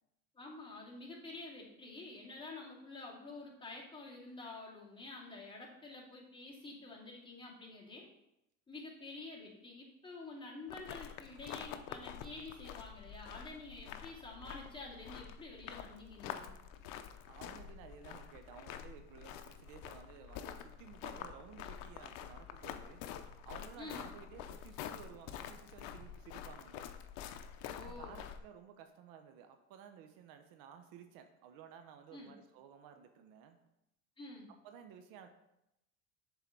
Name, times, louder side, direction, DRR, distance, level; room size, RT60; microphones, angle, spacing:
voice 1, 0.3-8.1 8.7-16.5 23.8-24.0 27.7-28.2 32.1-32.4 34.2-34.5, left 2 dB, 15° left, -5 dB, 2.2 m, -49 dB
sound 1, 10.7-28.4, left 9 dB, 65° left, 0.7 m, -47 dB
voice 2, 17.3-23.0 23.4-26.9 27.8-33.6 34.6-35.3, right 8 dB, 65° right, 7 dB, 0.8 m, -55 dB
6.9 x 4.0 x 4.5 m, 0.85 s
supercardioid pair, 100°, 37 cm